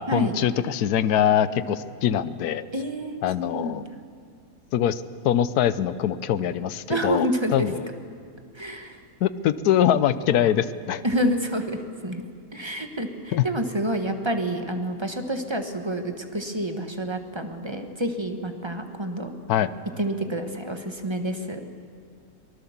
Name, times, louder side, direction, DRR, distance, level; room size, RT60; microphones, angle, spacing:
voice 1, 0.0-2.7 3.2-3.8 4.7-7.9 9.2-11.0 13.3-13.4 19.5-19.7, left 10 dB, 80° left, 15 dB, 1.2 m, -23 dB
voice 2, 2.7-3.9 6.9-7.7 8.6-9.0 11.0-12.2 12.5-19.3 20.0-21.6, right 1 dB, 20° right, 6 dB, 1.3 m, -28 dB
23.5 x 19.5 x 7.3 m, 2.2 s
omnidirectional pair, 1.6 m